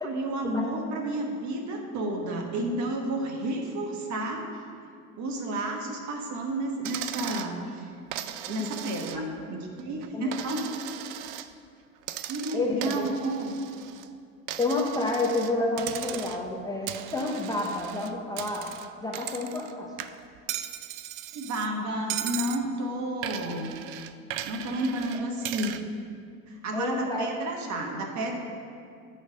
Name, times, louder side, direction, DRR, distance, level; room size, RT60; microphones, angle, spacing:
voice 1, 0.0-4.4 5.2-7.9 8.5-10.6 12.3-13.6 21.3-23.7 24.4-25.8 26.5-28.4, right 1 dB, 45° right, 2 dB, 1.2 m, -31 dB
Coin (dropping), 6.8-7.5 8.1-9.4 9.8-11.5 12.0-14.1 14.5-15.5 15.8-16.5 16.9-19.7 20.0-21.7 22.1-22.6 23.2-25.8, right 12 dB, 60° right, 0.5 m, -37 dB
voice 2, 8.4-8.7 9.1-9.3 10.1-10.5 12.5-13.1 14.6-18.7 19.0-19.9 26.7-27.4, left 2 dB, 10° left, -2 dB, 0.7 m, -29 dB
8.9 x 3.2 x 6.6 m, 2.3 s
hypercardioid pair, 85°, 41 cm